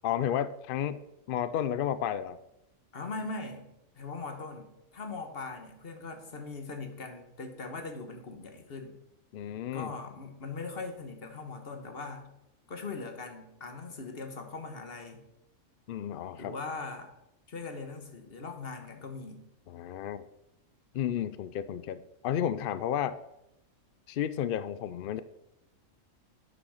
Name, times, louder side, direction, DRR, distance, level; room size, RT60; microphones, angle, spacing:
voice 1, 0.0-1.0 1.3-2.4 9.3-9.9 15.9-16.5 19.7-20.3 20.9-23.2 24.1-25.2, left 10 dB, 70° left, 14 dB, 0.5 m, -32 dB
voice 2, 2.9-3.7 3.9-9.0 9.7-12.3 12.7-15.2 16.4-17.1 17.5-19.4, left 3 dB, 45° left, 5 dB, 1.5 m, -40 dB
9.2 x 6.3 x 6.4 m, 0.87 s
omnidirectional pair, 1.4 m